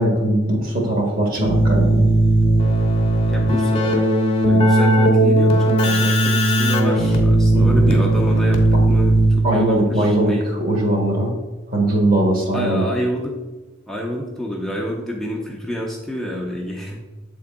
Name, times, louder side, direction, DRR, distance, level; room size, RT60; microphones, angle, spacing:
voice 1, 0.0-2.1 7.5-8.0 9.4-11.3 11.7-12.8, right 1 dB, 45° right, 0 dB, 1.4 m, -20 dB
Keyboard (musical), 1.4-9.7, right 1 dB, 30° left, 0.9 m, -16 dB
voice 2, 3.3-4.1 4.4-10.5 12.5-13.4 13.9-17.0, equal, ahead, -3 dB, 0.6 m, -28 dB
7.7 x 3.7 x 3.6 m, 1.1 s
head